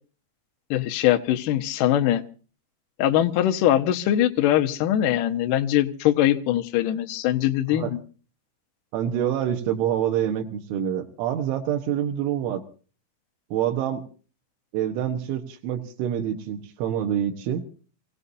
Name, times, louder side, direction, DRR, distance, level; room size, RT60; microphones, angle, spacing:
voice 1, 0.7-2.2 3.0-8.0, left 12 dB, 80° left, 5 dB, 1.9 m, -22 dB
voice 2, 8.9-12.6 13.5-14.0 14.7-17.7, right 10 dB, 90° right, 4 dB, 3.6 m, -26 dB
29.0 x 17.0 x 2.7 m, 0.38 s
omnidirectional pair, 5.3 m